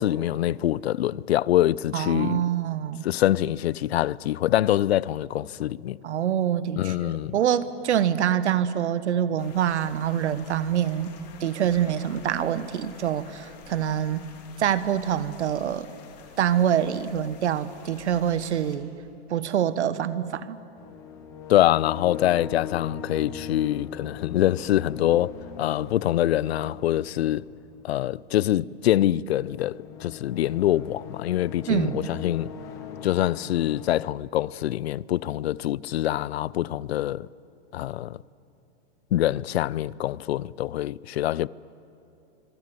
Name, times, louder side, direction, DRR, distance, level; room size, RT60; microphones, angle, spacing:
voice 1, 0.0-2.4 3.0-6.0 6.8-7.3 21.5-25.3 25.6-27.4 27.8-32.5 33.0-37.3 37.7-38.2 39.1-41.5, left 13 dB, 70° left, 0.5 m, -24 dB
voice 2, 1.9-3.1 6.0-11.1 11.4-14.3 14.6-15.9 16.4-18.9 19.3-20.6 31.7-32.1, right 9 dB, 90° right, 1.3 m, -25 dB
sound 1, 9.4-18.8, left 6 dB, 40° left, 2.9 m, -49 dB
sound 2, 20.8-34.0, left 7 dB, 10° left, 0.5 m, -41 dB
25.5 x 23.0 x 7.9 m
supercardioid pair, 175°, 33 cm